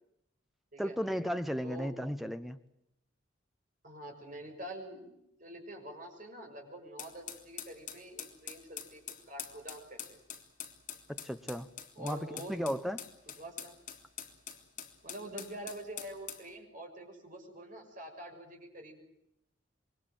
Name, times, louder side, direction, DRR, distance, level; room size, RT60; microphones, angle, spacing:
voice 1, 0.8-2.6 11.1-11.7 12.0-13.0, equal, ahead, 0.9 m, -35 dB
voice 2, 3.8-10.2 11.9-12.5 13.3-13.7 15.0-19.0, right 1 dB, 40° right, 6.5 m, -46 dB
sound 1, 7.0-16.5, left 9 dB, 40° left, 3.5 m, -45 dB
27.5 x 23.0 x 7.8 m
head